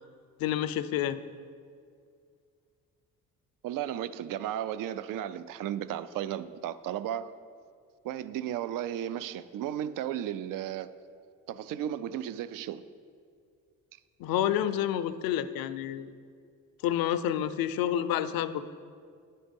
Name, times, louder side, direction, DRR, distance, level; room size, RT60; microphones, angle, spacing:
voice 1, 0.4-1.2 14.2-16.1 16.8-18.7, left 11 dB, 70° left, 13 dB, 0.5 m, -29 dB
voice 2, 3.6-7.3 8.0-10.9 11.5-12.8, right 11 dB, 65° right, 15 dB, 0.5 m, -34 dB
10.0 x 4.2 x 5.2 m, 2.2 s
supercardioid pair, 65°, 36 cm